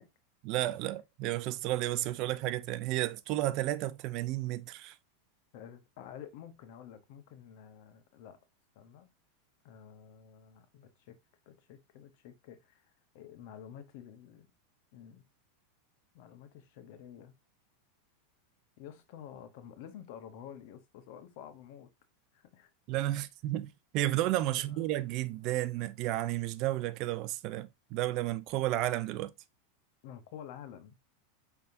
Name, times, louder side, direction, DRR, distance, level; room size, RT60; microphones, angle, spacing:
voice 1, 0.4-5.0 22.9-29.3, right 15 dB, 50° right, 0.4 m, -32 dB
voice 2, 5.5-8.4 8.7-9.1 9.6-11.2 11.5-12.9 13.1-14.5 14.9-15.2 16.1-17.3 18.8-21.9 22.3-22.7 24.5-24.8 30.0-30.9, left 9 dB, 60° left, 0.8 m, -50 dB
5.6 x 3.4 x 2.5 m
supercardioid pair, 125°, 0 cm